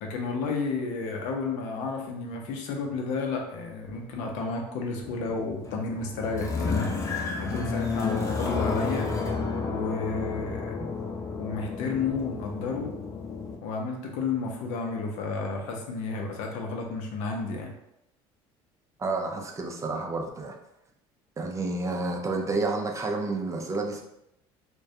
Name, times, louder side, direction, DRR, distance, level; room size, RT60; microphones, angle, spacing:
voice 1, 0.0-6.9 7.4-9.1 9.6-10.7 11.4-12.9 13.6-17.7, left 4 dB, 75° left, 1 dB, 0.6 m, -32 dB
sound 1, 5.0-13.6, left 4 dB, 25° left, 0.5 m, -31 dB
voice 2, 19.0-20.6 21.4-24.0, right 3 dB, 25° right, 2 dB, 0.4 m, -30 dB
2.3 x 2.1 x 2.7 m, 0.84 s
supercardioid pair, 95°, 13 cm